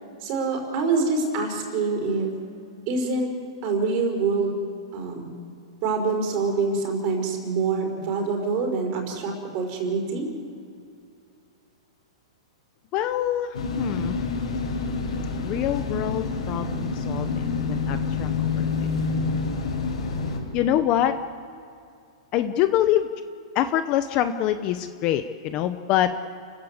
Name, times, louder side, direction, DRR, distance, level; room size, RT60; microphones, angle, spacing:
voice 1, 0.2-2.3 2.9-3.3 3.6-4.6 4.9-5.3 5.8-10.3, right 4 dB, 30° right, 3 dB, 4.8 m, -25 dB
voice 2, 12.9-14.2 15.4-18.3 18.6-18.7 19.0-19.1 20.5-21.2 22.3-23.1 23.5-26.1, left 11 dB, 25° left, 10 dB, 0.7 m, -25 dB
sound 1, 13.5-20.4, left 4 dB, 80° left, 6.4 m, -27 dB
29.5 x 14.5 x 8.1 m, 2.5 s
hypercardioid pair, 165°, 3 cm